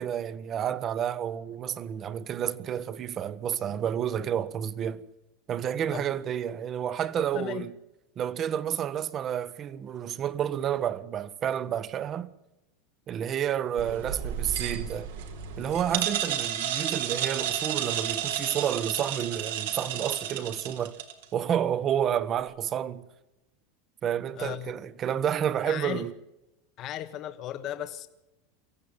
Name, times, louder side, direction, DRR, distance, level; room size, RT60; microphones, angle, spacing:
voice 1, 0.0-5.0 5.5-7.8 8.2-12.3 13.1-15.1 15.6-21.0 21.3-23.0 24.0-26.1, right 9 dB, 35° right, 1.3 m, -30 dB
voice 2, 7.2-7.7 24.3-24.7 25.6-26.1 26.8-28.1, left 11 dB, 45° left, 1.4 m, -36 dB
sound 1, 13.8-21.2, right 9 dB, 85° right, 4.0 m, -32 dB
24.5 x 15.5 x 8.8 m
supercardioid pair, 115°, 0 cm